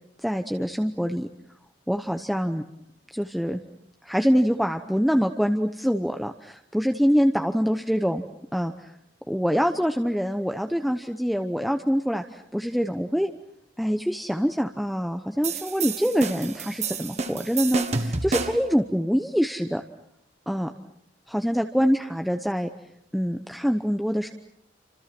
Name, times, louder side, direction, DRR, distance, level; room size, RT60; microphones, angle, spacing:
voice 1, 0.2-1.3 1.9-2.6 3.1-3.6 4.0-8.2 8.5-8.9 9.3-13.3 13.8-19.8 20.5-20.7 21.3-22.7 23.1-24.3, equal, ahead, 5 dB, 0.9 m, -25 dB
sound 1, 15.4-18.7, right 4 dB, 40° right, 1.8 m, -29 dB
29.0 x 26.0 x 6.1 m, 0.75 s
head